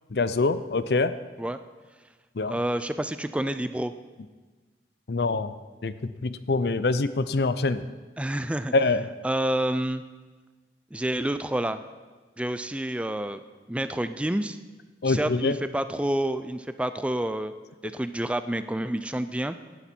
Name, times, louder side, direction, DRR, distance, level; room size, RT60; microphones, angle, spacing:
voice 1, 0.1-1.1 2.4-2.6 5.1-5.5 5.8-7.8 8.7-9.0 15.0-15.6, left 3 dB, 65° left, 13 dB, 0.6 m, -25 dB
voice 2, 2.5-3.9 8.2-8.7 9.2-10.0 10.9-11.8 12.4-13.4 13.7-14.6 15.0-17.5 17.8-19.6, right 1 dB, 5° right, 11 dB, 0.4 m, -28 dB
17.5 x 11.5 x 4.4 m, 1.3 s
head